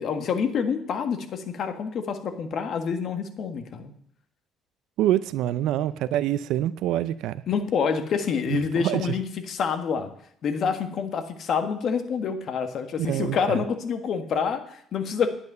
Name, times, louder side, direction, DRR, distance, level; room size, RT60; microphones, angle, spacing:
voice 1, 0.0-3.9 7.5-10.1 10.4-15.3, left 6 dB, 50° left, 7 dB, 1.6 m, -27 dB
voice 2, 5.0-7.4 8.5-9.1 13.0-13.6, right 12 dB, 80° right, 16 dB, 0.5 m, -26 dB
11.0 x 8.6 x 6.8 m, 0.69 s
cardioid pair, 130°, 0 cm